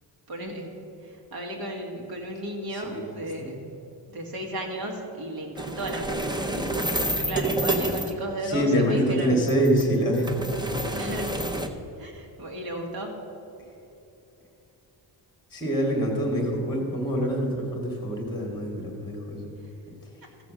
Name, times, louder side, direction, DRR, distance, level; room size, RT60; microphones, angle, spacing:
voice 1, 0.3-3.6 4.1-6.6 7.1-9.4 10.9-11.3 12.0-13.2 19.6-19.7 20.2-20.3, right 1 dB, 50° right, 1 dB, 2.1 m, -34 dB
sound 1, 5.6-8.1 9.4-11.7, right 1 dB, 10° right, 0.6 m, -29 dB
voice 2, 8.4-10.4 15.5-19.5, equal, 10° left, 0 dB, 1.7 m, -25 dB
14.0 x 7.4 x 6.2 m, 2.9 s
wide cardioid pair, 165°, 45 cm